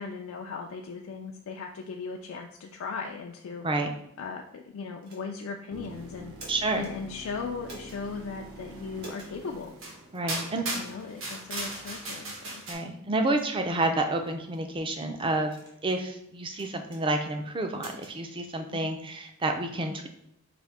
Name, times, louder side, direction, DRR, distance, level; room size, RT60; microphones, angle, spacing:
voice 1, 0.0-3.7 4.2-6.4 6.7-9.8 10.2-10.5 10.8-12.6 18.7-18.8, left 5 dB, 85° left, 2 dB, 0.4 m, -38 dB
sound 1, 5.0-5.5 6.2-6.9 7.6-8.0 9.0-9.3 10.1-10.3 10.9-11.1 11.6-11.8 12.4-12.5 13.1-13.5 14.2-14.6 15.4-16.0 16.5-17.0 17.7-18.2, right 2 dB, 50° right, 1.3 m, -48 dB
sound 2, 5.7-10.8 14.8-14.9, right 1 dB, 90° right, 0.8 m, -47 dB
voice 2, 6.5-6.9 10.1-10.6 12.7-15.6 15.8-20.1, right 2 dB, 25° right, 5 dB, 0.4 m, -29 dB
sound 3, 9.1-9.2 9.8-10.0 10.3-12.7, right 2 dB, 75° right, 1.3 m, -36 dB
5.0 x 2.6 x 3.4 m, 0.78 s
head